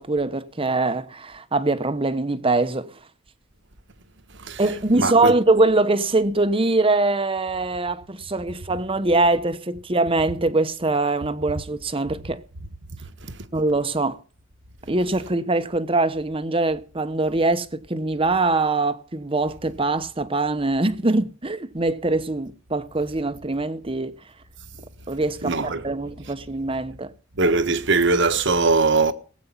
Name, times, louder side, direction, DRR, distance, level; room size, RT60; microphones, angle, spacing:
voice 1, 0.0-3.0 4.6-12.4 13.5-14.2 14.9-24.1 25.1-27.1, right 2 dB, 25° right, 1.0 m, -23 dB
voice 2, 4.9-5.3 13.2-13.4 25.4-25.8 27.4-29.1, right 3 dB, 60° right, 1.4 m, -21 dB
18.5 x 8.6 x 5.8 m
head